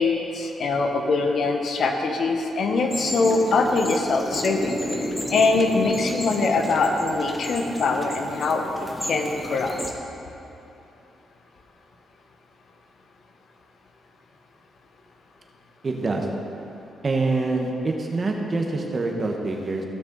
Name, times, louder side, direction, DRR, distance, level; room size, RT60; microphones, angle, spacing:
voice 1, 0.0-4.8 5.3-8.6 9.0-9.7, left 3 dB, 65° left, 3 dB, 1.0 m, -23 dB
sound 1, 2.9-9.9, left 1 dB, 15° left, 1.1 m, -32 dB
voice 2, 15.8-16.3 17.0-19.8, right 3 dB, 35° right, 1 dB, 1.3 m, -25 dB
15.5 x 6.3 x 4.0 m, 2.8 s
cardioid pair, 90°, 0 cm